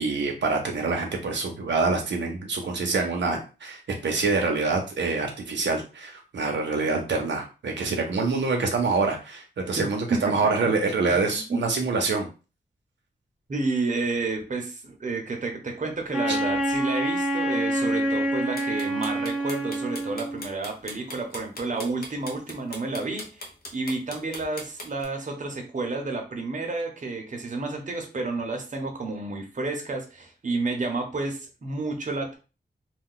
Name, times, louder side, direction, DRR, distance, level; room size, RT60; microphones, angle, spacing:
voice 1, 0.0-12.3 16.3-16.4, right 4 dB, 90° right, 2 dB, 0.6 m, -26 dB
voice 2, 9.7-10.2 10.6-10.7 11.3-11.4 13.5-32.4, right 3 dB, 45° right, 2 dB, 0.7 m, -31 dB
Wind instrument woodwind instrument, 16.1-20.5, right 1 dB, 5° right, 0.6 m, -27 dB
sound 1, 18.5-25.0, left 1 dB, 55° left, 0.7 m, -39 dB
2.4 x 2.2 x 3.7 m, 0.32 s
wide cardioid pair, 100°, 18 cm